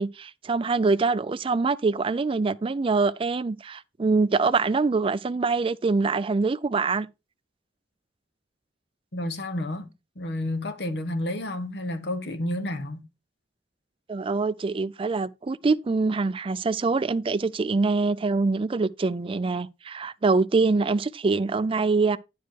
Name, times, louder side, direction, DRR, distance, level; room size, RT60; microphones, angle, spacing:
voice 1, 0.0-7.1 14.1-22.2, right 4 dB, 30° right, 0.4 m, -24 dB
voice 2, 9.1-9.9 10.2-13.0, left 1 dB, 70° left, 1.2 m, -30 dB
10.0 x 4.7 x 4.5 m
head